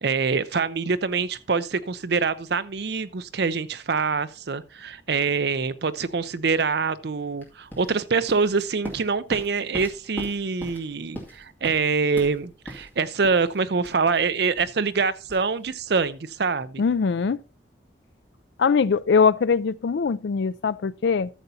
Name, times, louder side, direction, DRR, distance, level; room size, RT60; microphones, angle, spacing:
voice 1, 0.0-16.8, right 4 dB, 60° right, 0.5 m, -25 dB
sound 1, 7.4-16.2, equal, 10° left, 2.2 m, -41 dB
voice 2, 16.8-17.4 18.6-21.3, left 5 dB, 70° left, 0.4 m, -21 dB
13.5 x 6.8 x 2.8 m
head